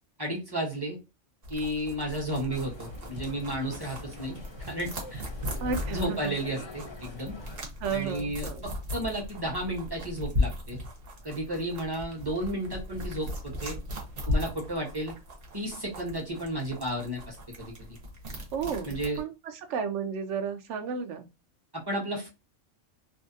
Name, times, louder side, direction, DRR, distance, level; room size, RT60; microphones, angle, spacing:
voice 1, 0.2-1.0 1.5-4.4 4.7-5.2 5.9-7.4 7.9-10.8 11.2-13.8 14.3-15.1 15.5-17.9 18.8-19.2 21.7-22.3, right 1 dB, 20° right, -2 dB, 0.9 m, -33 dB
sound 1, 1.4-19.2, left 1 dB, 50° right, 1.0 m, -37 dB
sound 2, 2.5-7.6, left 2 dB, 30° left, 0.5 m, -46 dB
voice 2, 5.6-6.3 7.8-8.6 18.5-21.3, right 6 dB, 75° right, 8 dB, 0.9 m, -33 dB
2.6 x 2.4 x 2.6 m, 0.27 s
omnidirectional pair, 1.3 m